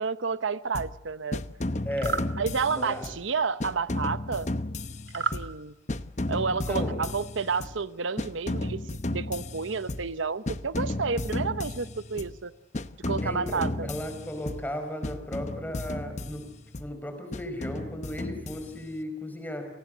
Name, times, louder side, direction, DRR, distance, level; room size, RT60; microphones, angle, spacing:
voice 1, 0.0-1.4 2.4-4.5 5.1-5.7 6.3-12.5 13.1-13.9, right 5 dB, 80° right, 14 dB, 0.8 m, -30 dB
sound 1, 0.7-1.0 1.3-3.3 3.6-5.6 5.9-7.8 8.2-10.2 10.5-12.4 12.7-14.7 15.0-16.9 17.3-19.0, left 2 dB, 35° left, 0.9 m, -34 dB
voice 2, 1.8-2.2 2.7-3.1 6.5-7.0 13.2-16.4 16.8-19.7, left 1 dB, 10° left, 6 dB, 5.0 m, -35 dB
sound 2, 1.9-2.3 5.1-5.4, right 5 dB, 65° right, 1.7 m, -30 dB
29.5 x 19.5 x 7.8 m, 0.88 s
head